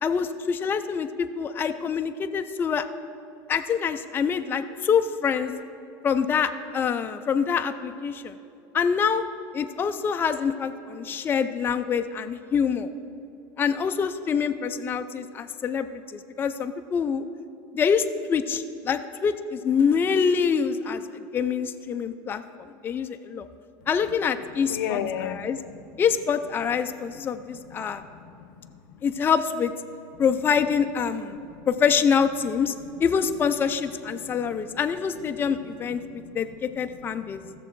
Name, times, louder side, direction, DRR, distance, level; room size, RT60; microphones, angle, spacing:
voice 1, 0.0-2.9 3.5-5.5 6.0-8.3 8.7-9.2 9.5-12.9 13.6-17.2 17.7-22.4 22.8-23.5 23.9-25.6 26.0-28.0 29.0-29.7 30.2-31.4 31.7-32.7 33.0-37.4, left 6 dB, 20° left, 7 dB, 0.4 m, -25 dB
voice 2, 24.7-25.4 27.5-28.7 28.9-29.1 31.4-31.6 34.2-34.5 36.0-36.2 36.7-36.8 37.2-37.6, left 9 dB, 85° left, 11 dB, 0.7 m, -35 dB
15.0 x 6.8 x 4.6 m, 2.6 s
supercardioid pair, 140°, 10 cm